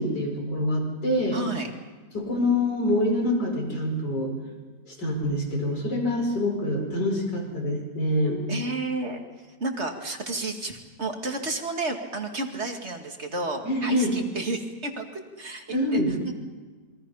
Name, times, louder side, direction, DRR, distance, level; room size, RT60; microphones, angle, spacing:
voice 1, 0.0-1.4 2.1-4.3 4.9-8.4 13.6-14.2 15.7-16.1, left 1 dB, 85° left, 0 dB, 5.7 m, -25 dB
voice 2, 1.3-1.7 8.5-16.3, right 2 dB, 40° right, 3 dB, 2.5 m, -32 dB
27.5 x 23.5 x 5.7 m, 1.4 s
omnidirectional pair, 1.8 m